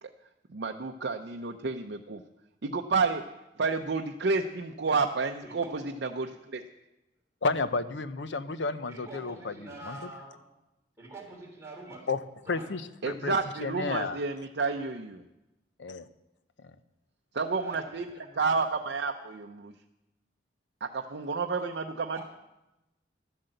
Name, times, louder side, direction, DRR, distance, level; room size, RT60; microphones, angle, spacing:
voice 1, 0.5-2.2 2.6-3.2 3.6-6.6 13.0-15.2 17.3-18.1 18.3-19.7 20.8-22.2, right 4 dB, 65° right, 3 dB, 0.6 m, -30 dB
voice 2, 5.4-5.9 8.9-10.4 11.0-12.1 12.4-12.7 17.5-18.5 22.1-22.2, right 2 dB, 15° right, -2 dB, 3.4 m, -46 dB
voice 3, 7.4-9.5 9.8-10.1 12.1-12.2 12.5-13.3 13.6-14.2 15.8-16.1 16.6-16.7, left 3 dB, 80° left, 13 dB, 0.7 m, -31 dB
12.5 x 7.9 x 7.8 m, 0.95 s
head